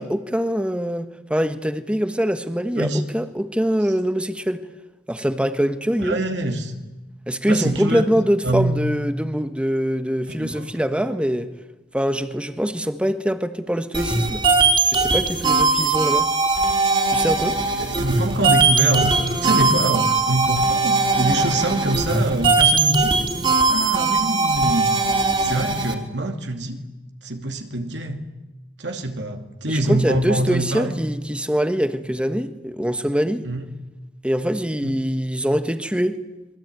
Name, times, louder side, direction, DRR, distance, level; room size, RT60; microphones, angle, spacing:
voice 1, 0.0-4.6 5.1-6.2 7.3-11.5 11.9-14.4 14.9-16.3 17.1-17.6 29.7-33.5 34.2-36.2, equal, 5° right, 1.5 m, -23 dB
voice 2, 6.0-6.8 7.5-8.0 8.4-8.8 10.4-10.7 17.8-23.1 23.7-24.9 25.4-26.8 27.2-28.3 28.8-30.9 33.4-33.7 34.8-35.0, right 1 dB, 70° right, 2.6 m, -24 dB
sound 1, 13.9-25.9, right 3 dB, 30° right, 3.9 m, -20 dB
28.0 x 22.0 x 9.3 m
head